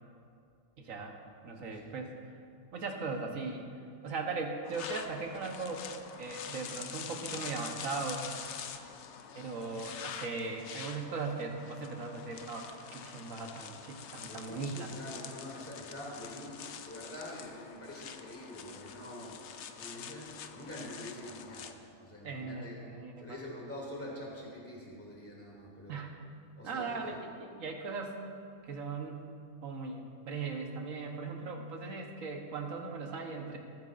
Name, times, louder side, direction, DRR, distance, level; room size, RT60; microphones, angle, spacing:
voice 1, 0.8-1.2 1.4-2.1 2.7-3.6 4.0-5.9 6.2-8.3 9.3-14.9 22.2-23.4 25.9-26.1 26.6-28.2 28.6-29.2 29.6-33.6, right 4 dB, 60° right, 2 dB, 1.4 m, -38 dB
voice 2, 1.6-2.1 14.3-19.4 19.7-22.8 23.2-26.0 26.6-27.1, left 1 dB, 10° left, -5 dB, 2.4 m, -46 dB
sound 1, 4.6-21.7, left 7 dB, 65° left, 0.7 m, -45 dB
20.0 x 9.2 x 2.5 m, 2.3 s
omnidirectional pair, 1.7 m